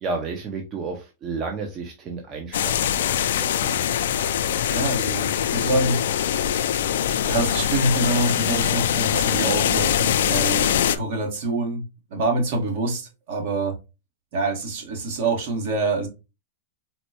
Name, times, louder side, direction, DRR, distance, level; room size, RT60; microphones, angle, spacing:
voice 1, 0.0-3.8, right 4 dB, 30° right, 0.6 m, -32 dB
sound 1, 2.5-11.0, left 10 dB, 75° left, 0.3 m, -23 dB
voice 2, 4.7-6.0 6.3-6.9 7.2-11.8 12.1-13.7 14.3-16.1, right 2 dB, 60° right, 1.5 m, -26 dB
4.1 x 2.2 x 2.9 m
hypercardioid pair, 130°, 0 cm